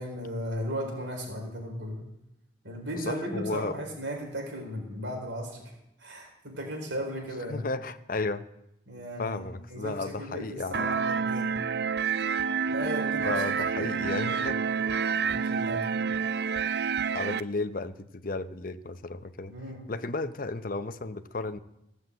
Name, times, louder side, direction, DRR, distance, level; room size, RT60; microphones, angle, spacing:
voice 1, 0.0-2.0 2.6-5.7 6.0-7.7 8.9-9.4 9.7-11.5 12.7-16.0 19.5-19.9, equal, 80° right, 1 dB, 4.5 m, -36 dB
voice 2, 3.0-3.8 7.5-8.5 9.2-10.9 13.2-14.7 17.1-19.5 19.9-21.6, left 3 dB, 45° left, 12 dB, 0.7 m, -34 dB
sound 1, 10.7-17.4, right 6 dB, 60° right, 0.4 m, -28 dB
16.0 x 7.8 x 8.1 m, 0.85 s
head